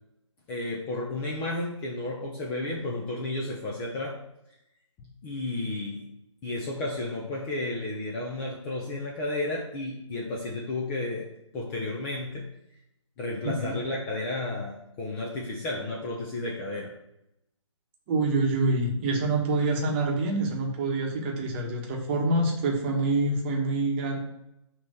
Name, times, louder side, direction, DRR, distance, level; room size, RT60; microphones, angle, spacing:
voice 1, 0.5-4.2 5.0-6.1 6.4-12.5 13.2-17.0, left 2 dB, 15° left, -3 dB, 0.6 m, -32 dB
voice 2, 13.4-13.8 18.1-24.2, right 2 dB, 20° right, 0 dB, 1.1 m, -26 dB
6.0 x 3.0 x 5.5 m, 0.85 s
figure-of-eight pair, 145°, 16 cm